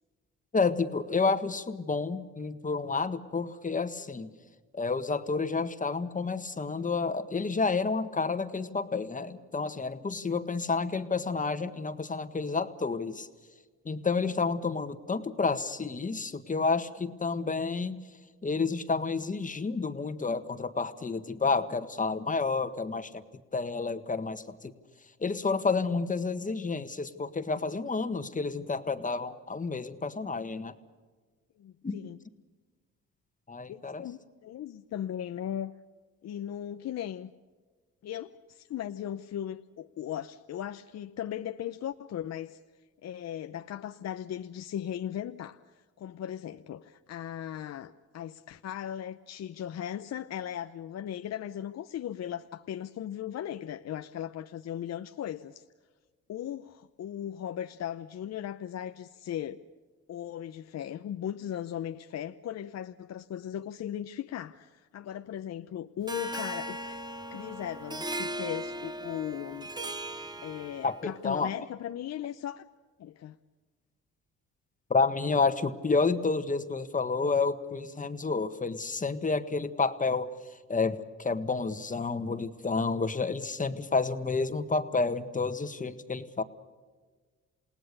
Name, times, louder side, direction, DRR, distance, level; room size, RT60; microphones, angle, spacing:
voice 1, 0.5-4.3 4.7-13.3 13.8-18.1 18.4-23.2 23.5-24.7 25.2-30.7 31.8-32.0 33.5-34.0 70.8-71.5 74.9-80.3 80.7-86.4, left 4 dB, 25° left, 10 dB, 1.6 m, -30 dB
voice 2, 31.6-32.2 33.7-35.7 36.2-37.3 38.0-42.6 43.0-45.6 46.0-55.6 56.3-59.6 60.1-67.0 67.3-69.7 70.4-72.6 73.0-73.4, left 10 dB, 60° left, 9 dB, 0.8 m, -37 dB
Harp, 66.1-71.1, right 1 dB, 15° right, 1.3 m, -38 dB
28.5 x 18.5 x 6.7 m, 1.4 s
cardioid pair, 90°, 30 cm